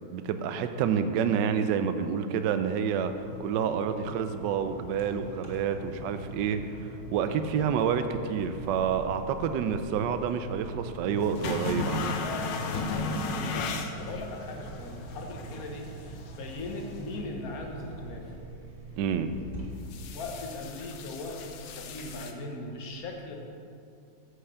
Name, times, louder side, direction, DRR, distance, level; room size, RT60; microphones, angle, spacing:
voice 1, 0.1-12.2 19.0-19.3, right 7 dB, 80° right, 9 dB, 1.3 m, -28 dB
sound 1, 3.0-20.2, right 3 dB, 25° right, 1.7 m, -47 dB
sound 2, 4.6-18.5, right 1 dB, 30° left, 2.2 m, -47 dB
sound 3, 8.4-22.3, left 4 dB, 80° left, 1.4 m, -38 dB
voice 2, 12.1-18.3 20.1-23.4, left 2 dB, 55° left, 2 dB, 1.6 m, -39 dB
9.7 x 5.6 x 6.7 m, 2.5 s
omnidirectional pair, 1.9 m